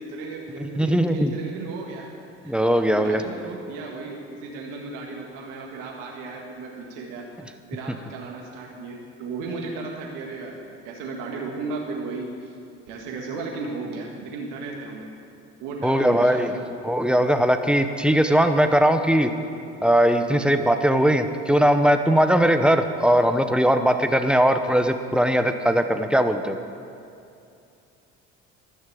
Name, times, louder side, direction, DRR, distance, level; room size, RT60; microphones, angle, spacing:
voice 1, 0.0-2.1 2.4-2.5 2.9-7.3 7.7-12.5 12.9-15.1 15.6-16.7, right 3 dB, 75° right, -1 dB, 1.7 m, -35 dB
voice 2, 0.6-1.3 2.4-3.2 15.8-16.5 16.8-19.3 19.8-26.6, equal, 5° right, 7 dB, 0.9 m, -20 dB
12.5 x 6.5 x 8.5 m, 2.6 s
supercardioid pair, 75°, 32 cm